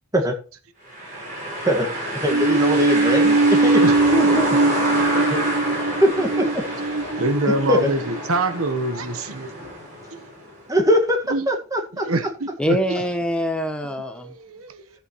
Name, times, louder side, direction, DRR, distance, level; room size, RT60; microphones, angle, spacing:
sound 1, 0.9-10.7, right 1 dB, 40° right, 5.5 m, -28 dB
voice 1, 2.2-3.8 5.3-5.4 6.0-6.6 7.7-7.8 10.7-12.1, equal, 15° right, 1.7 m, -21 dB
sound 2, 2.3-8.7, right 3 dB, 55° right, 0.6 m, -21 dB
voice 2, 3.9-4.5 12.6-14.3, equal, 5° left, 0.9 m, -24 dB
voice 3, 7.2-9.5 10.1-10.3 11.3-11.5 12.0-13.0 14.2-14.8, right 2 dB, 85° right, 1.1 m, -25 dB
13.5 x 7.9 x 3.1 m
head